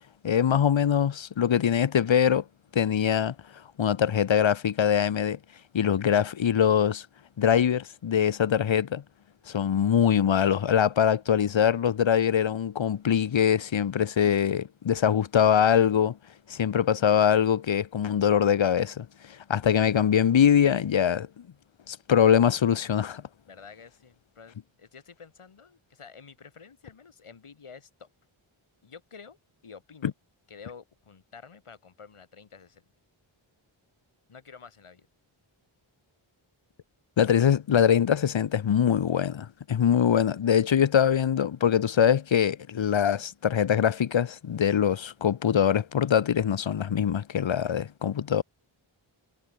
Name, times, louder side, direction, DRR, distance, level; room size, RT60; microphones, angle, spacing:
voice 1, 0.2-2.4 2.7-3.3 3.8-5.4 5.7-7.1 7.4-9.0 9.5-16.2 16.5-19.1 19.5-21.3 21.9-23.2 37.2-48.4, left 8 dB, 65° left, 0.8 m, -23 dB
voice 2, 23.5-28.1 28.8-29.4 29.6-30.1 30.5-32.8 34.3-35.1, left 5 dB, 85° left, 3.0 m, -49 dB
wide cardioid pair, 85°, 50 cm